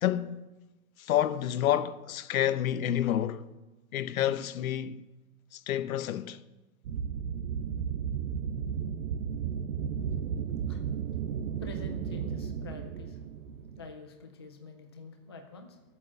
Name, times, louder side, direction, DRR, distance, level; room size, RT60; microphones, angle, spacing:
voice 1, 0.0-0.4 1.0-3.4 3.9-5.0 5.5-6.4, left 11 dB, 70° left, 0.9 m, -29 dB
sound 1, 6.8-13.9, right 7 dB, 60° right, 0.9 m, -34 dB
voice 2, 10.6-11.2 11.6-13.5 13.7-15.8, left 3 dB, 20° left, 0.3 m, -47 dB
13.5 x 8.5 x 7.1 m
supercardioid pair, 170°, 44 cm